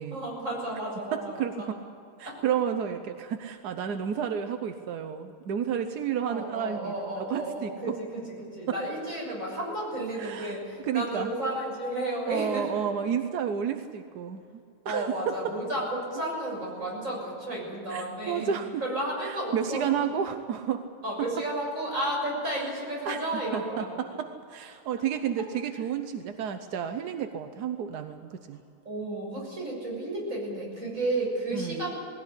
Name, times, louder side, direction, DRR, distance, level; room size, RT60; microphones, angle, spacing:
voice 1, 0.1-1.7 2.2-2.4 6.2-12.8 14.8-20.0 21.0-24.2 28.9-32.0, right 1 dB, 35° right, -2 dB, 7.3 m, -32 dB
voice 2, 1.1-1.8 2.2-8.0 8.7-8.8 10.1-10.6 10.8-11.3 12.3-14.4 14.8-15.5 17.9-18.7 19.2-20.8 21.2-21.3 22.6-22.7 23.0-28.6 31.5-31.9, right 8 dB, 60° right, 7 dB, 1.2 m, -31 dB
20.5 x 16.5 x 9.9 m, 2.6 s
omnidirectional pair, 2.4 m